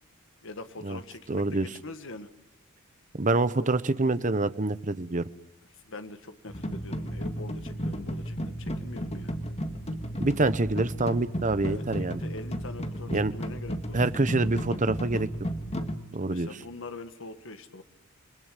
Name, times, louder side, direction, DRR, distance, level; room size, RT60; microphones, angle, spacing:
voice 1, 0.4-2.3 3.6-3.7 5.8-9.3 11.6-14.0 16.2-17.8, left 2 dB, 65° left, 9 dB, 1.6 m, -43 dB
voice 2, 1.3-1.7 3.1-5.2 10.2-12.2 13.1-13.3 13.9-15.3 16.1-16.5, right 2 dB, 35° right, 13 dB, 1.0 m, -26 dB
sound 1, 6.5-16.0, equal, 30° left, 1.9 m, -34 dB
29.5 x 21.5 x 9.1 m, 0.80 s
head